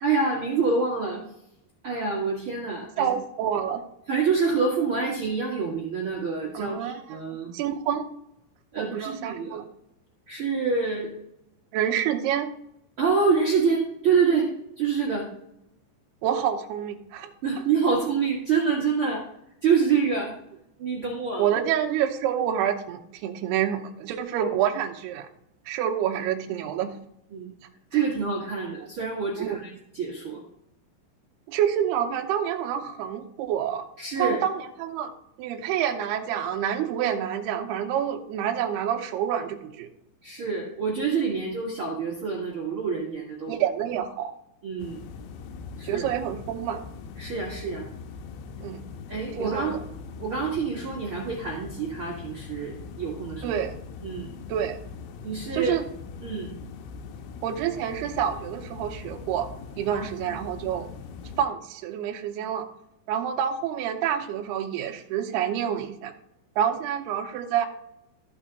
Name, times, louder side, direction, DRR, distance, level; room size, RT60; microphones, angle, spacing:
voice 1, 0.0-1.2 1.8-3.1 4.1-7.5 8.7-9.6 10.3-11.1 13.0-14.5 14.8-15.3 17.4-19.2 19.6-20.3 20.8-21.5 27.3-27.5 27.9-30.4 34.0-34.4 40.2-43.5 44.6-45.0 45.8-46.0 47.2-47.9 49.1-49.8 50.2-53.5 54.0-54.3 55.2-55.7 56.2-56.5 59.9-60.3, right 5 dB, 50° right, -5 dB, 1.5 m, -26 dB
voice 2, 3.0-3.8 6.5-8.1 8.8-9.7 11.7-12.5 16.2-17.3 21.4-25.3 25.7-26.9 27.9-28.0 29.4-29.6 31.5-33.9 34.2-35.1 35.4-39.9 43.5-44.3 45.8-46.8 48.6-48.8 49.4-49.8 53.4-53.8 54.5-54.8 55.5-55.8 57.4-59.5 59.8-60.9 61.4-62.7 63.1-66.1 66.6-67.7, right 9 dB, 75° right, 3 dB, 2.5 m, -28 dB
sound 1, 44.8-61.5, left 5 dB, 80° left, 2.7 m, -41 dB
13.5 x 5.5 x 4.0 m, 0.80 s
omnidirectional pair, 5.2 m